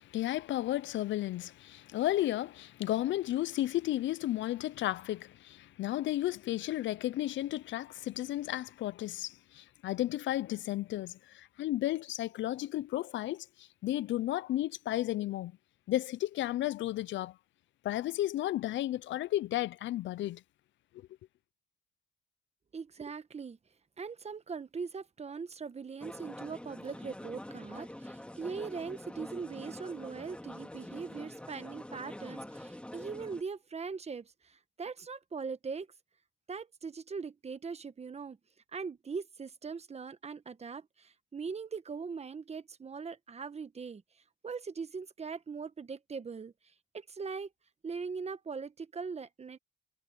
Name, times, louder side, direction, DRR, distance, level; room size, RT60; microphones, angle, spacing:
voice 1, 0.0-15.5 15.9-17.4 17.8-20.4, left 14 dB, 70° left, 0.5 m, -33 dB
voice 2, 22.7-23.6 24.0-35.9 36.5-38.4 38.7-44.0 44.4-46.5 46.9-47.5 47.8-49.6, right 5 dB, 30° right, 1.2 m, -41 dB
sound 1, 26.0-33.4, left 1 dB, 5° left, 2.0 m, -45 dB
cardioid pair, 90°, 20 cm